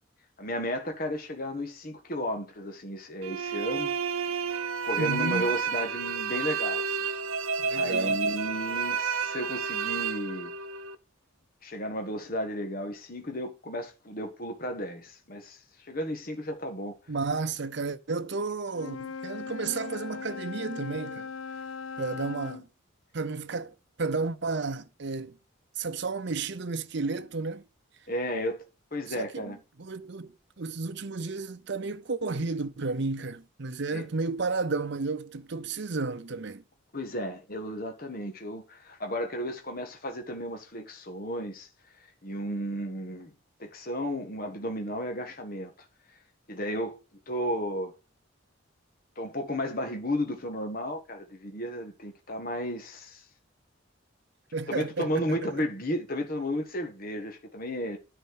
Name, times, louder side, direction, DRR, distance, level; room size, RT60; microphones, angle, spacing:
voice 1, 0.4-3.9 4.8-7.0 7.7-10.5 11.6-15.6 15.9-17.0 28.1-28.6 28.9-29.6 33.9-34.1 36.9-41.7 42.2-43.3 43.6-45.7 46.5-47.0 47.3-47.9 49.2-53.2 54.7-58.0, equal, 45° left, 1.5 m, -33 dB
sound 1, 3.2-11.0, right 6 dB, 85° right, 0.9 m, -30 dB
voice 2, 5.0-5.5 7.6-8.2 17.1-21.3 22.0-22.7 23.1-25.4 25.8-27.6 29.2-36.6 54.5-55.5, right 3 dB, 55° right, 0.7 m, -32 dB
Wind instrument woodwind instrument, 18.7-22.7, left 5 dB, 70° left, 0.6 m, -39 dB
10.0 x 4.5 x 6.5 m
head